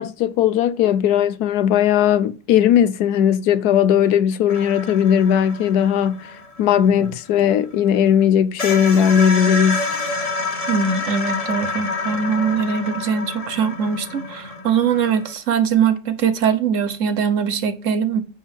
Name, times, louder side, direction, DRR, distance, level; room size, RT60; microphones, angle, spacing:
voice 1, 0.0-6.3 6.6-9.9, left 9 dB, 75° left, 1.1 m, -17 dB
sound 1, 4.5-7.9 8.2-8.3 8.6-15.3, left 3 dB, 25° left, 1.0 m, -28 dB
voice 2, 10.7-18.2, right 6 dB, 55° right, 1.2 m, -21 dB
9.3 x 5.4 x 4.5 m
omnidirectional pair, 1.7 m